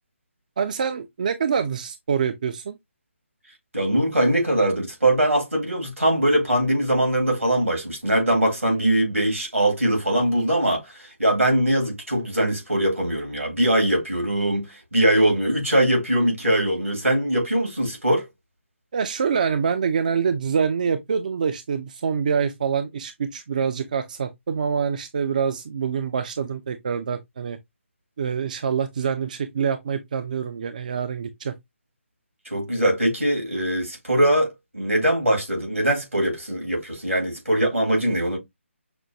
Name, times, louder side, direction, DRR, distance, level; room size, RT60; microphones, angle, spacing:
voice 1, 0.6-2.8 18.9-27.6 28.2-31.5, right 6 dB, 35° right, 0.3 m, -25 dB
voice 2, 3.7-18.3 32.5-38.4, right 1 dB, 80° right, 1.9 m, -22 dB
5.9 x 2.2 x 2.6 m
figure-of-eight pair, 145°, 7 cm